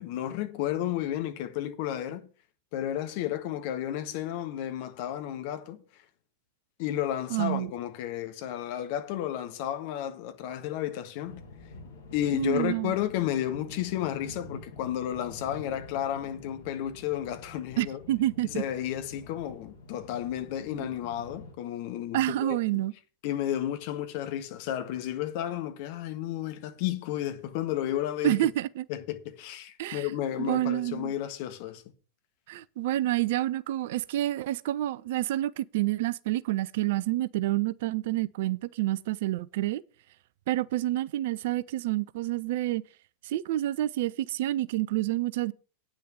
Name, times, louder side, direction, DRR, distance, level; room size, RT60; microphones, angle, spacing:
voice 1, 0.0-2.3 2.7-5.8 6.8-11.4 12.1-18.0 18.5-22.8 23.2-28.4 28.9-31.8, left 11 dB, 45° left, 1.5 m, -32 dB
voice 2, 7.3-7.7 12.3-12.9 17.8-18.6 20.7-20.9 22.1-22.9 28.2-28.9 29.8-30.1 30.4-31.1 32.5-39.8 40.5-42.8 43.2-45.5, right 15 dB, 55° right, 0.4 m, -28 dB
sound 1, 11.2-21.5, left 3 dB, 65° left, 2.3 m, -47 dB
9.4 x 6.4 x 7.6 m
figure-of-eight pair, 90°, 0 cm